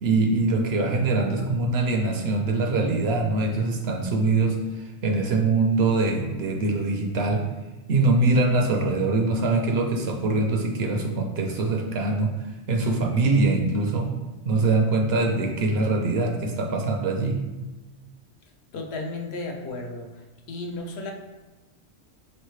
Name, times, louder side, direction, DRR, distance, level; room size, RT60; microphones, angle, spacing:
voice 1, 0.0-7.5 7.9-12.4 12.7-14.1 14.4-17.4, right 3 dB, 65° right, 2 dB, 0.7 m, -23 dB
voice 2, 18.7-20.1 20.5-21.1, left 2 dB, 65° left, 2 dB, 0.8 m, -33 dB
4.7 x 3.2 x 3.1 m, 1.1 s
omnidirectional pair, 1.2 m